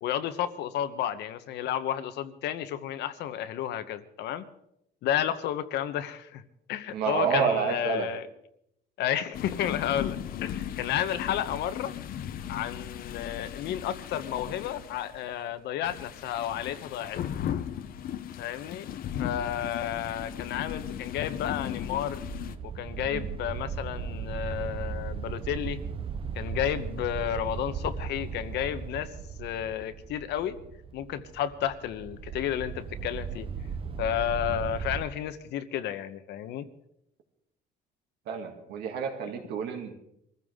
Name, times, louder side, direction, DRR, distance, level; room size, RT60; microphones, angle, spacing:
voice 1, 0.0-4.4 5.0-6.4 6.7-8.3 9.0-11.9 12.5-17.2 18.4-22.2 22.6-25.8 26.3-30.6 30.9-33.5 34.0-36.7, left 10 dB, 80° left, 11 dB, 1.2 m, -32 dB
voice 2, 6.9-8.1 23.1-23.3 34.5-34.6 38.3-39.9, right 6 dB, 75° right, 3 dB, 2.7 m, -29 dB
sound 1, 9.3-15.3 15.8-22.6, left 10 dB, 55° left, 0.8 m, -37 dB
sound 2, 19.2-35.1, right 6 dB, 30° right, 0.8 m, -37 dB
23.0 x 15.0 x 3.8 m, 0.78 s
cardioid pair, 155°, 17 cm